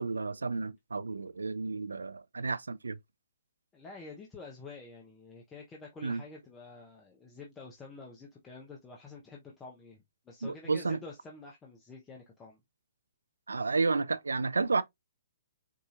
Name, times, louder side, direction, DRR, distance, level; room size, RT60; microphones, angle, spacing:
voice 1, 0.0-3.0 6.0-6.2 10.4-11.0 13.5-14.8, right 4 dB, 90° right, 0.4 m, -31 dB
voice 2, 3.7-12.6, left 3 dB, 15° left, 0.8 m, -48 dB
4.8 x 2.7 x 2.4 m
hypercardioid pair, 130°, 0 cm